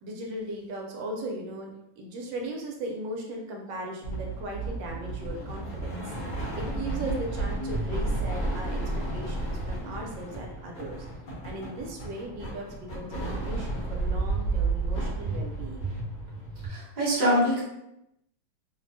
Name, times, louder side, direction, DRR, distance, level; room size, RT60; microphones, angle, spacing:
voice 1, 0.0-6.1 6.6-11.1 11.4-15.9, right 1 dB, 75° right, 0 dB, 1.2 m, -38 dB
sound 1, 4.0-16.7, right 2 dB, 60° left, 1.1 m, -32 dB
voice 2, 16.7-17.6, equal, 50° right, -6 dB, 0.5 m, -24 dB
3.1 x 2.0 x 2.6 m, 0.83 s
omnidirectional pair, 2.1 m